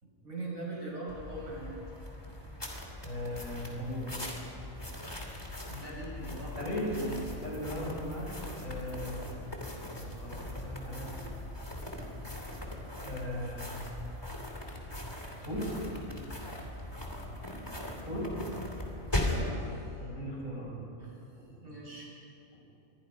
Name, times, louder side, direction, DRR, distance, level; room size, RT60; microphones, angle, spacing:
voice 1, 0.0-1.7 5.7-7.2 7.7-7.9 16.0-16.1 19.2-19.9 21.0-21.1 21.6-22.1, right 2 dB, 80° right, -4 dB, 7.2 m, -41 dB
sound 1, 1.1-19.5, left 1 dB, 15° left, 2.9 m, -39 dB
voice 2, 3.0-4.1 4.7-4.9 6.6-6.9 7.4-9.6 9.9-11.1 11.4-11.5 12.0-12.1 12.5-12.7 13.0-13.8 15.4-15.7 17.0-17.1 18.0-18.7 20.0-20.9 21.4-21.6 22.5-22.6, left 1 dB, 65° left, -3 dB, 6.9 m, -39 dB
26.5 x 23.5 x 5.3 m, 2.8 s
omnidirectional pair, 1.4 m